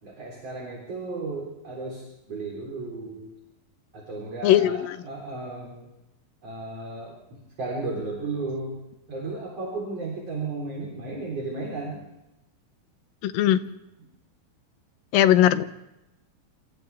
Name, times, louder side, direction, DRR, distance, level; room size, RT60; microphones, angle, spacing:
voice 1, 0.0-3.3 3.9-5.9 6.4-8.8 9.1-12.0, right 3 dB, 40° right, -2 dB, 4.6 m, -34 dB
voice 2, 4.4-5.0 13.2-13.6 15.1-15.7, left 12 dB, 75° left, 12 dB, 2.4 m, -19 dB
27.5 x 27.0 x 3.5 m, 0.94 s
omnidirectional pair, 4.3 m